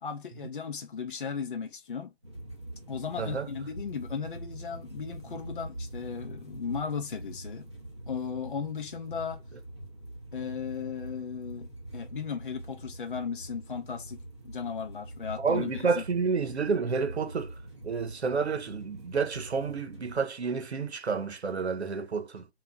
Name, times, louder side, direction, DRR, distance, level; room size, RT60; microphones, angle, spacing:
voice 1, 0.0-2.1 2.9-7.7 8.1-9.4 10.3-16.0, left 6 dB, 55° left, 0.5 m, -36 dB
sound 1, 2.2-20.1, right 1 dB, 25° right, 0.5 m, -44 dB
voice 2, 15.4-17.5 17.8-22.5, right 5 dB, 85° right, 0.7 m, -30 dB
2.3 x 2.1 x 3.6 m
figure-of-eight pair, 165°, 32 cm